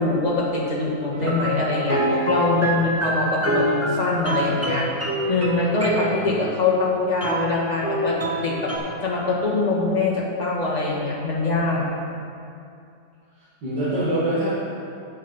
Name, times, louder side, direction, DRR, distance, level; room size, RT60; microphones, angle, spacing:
voice 1, 0.0-4.9 5.3-11.9, left 3 dB, 25° left, -6 dB, 1.7 m, -23 dB
sound 1, 1.1-6.2 7.2-8.8, right 1 dB, 10° right, 0.9 m, -26 dB
voice 2, 5.8-6.5 13.6-14.5, right 1 dB, 80° right, -13 dB, 2.9 m, -26 dB
9.2 x 8.8 x 4.3 m, 2.5 s
omnidirectional pair, 1.9 m